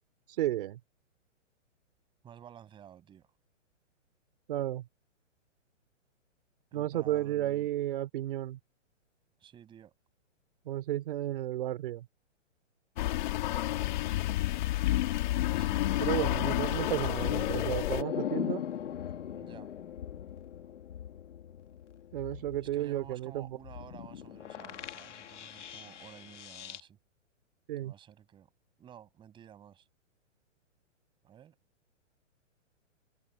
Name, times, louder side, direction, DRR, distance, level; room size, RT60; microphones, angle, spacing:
voice 1, 0.3-0.8 4.5-4.8 6.7-8.6 10.6-12.1 16.0-18.6 22.1-23.5 27.7-27.9, right 13 dB, 45° right, 3.0 m, -33 dB
voice 2, 2.2-3.3 6.7-7.7 9.4-9.9 15.5-16.0 19.3-19.7 22.7-27.0 27.8-28.5 28.8-29.9 31.2-31.6, right 9 dB, 10° right, 6.6 m, -53 dB
sound 1, 13.0-18.0, left 16 dB, 35° left, 2.3 m, -30 dB
sound 2, 16.7-26.8, left 10 dB, 65° left, 2.1 m, -40 dB
hypercardioid pair, 165°, 38 cm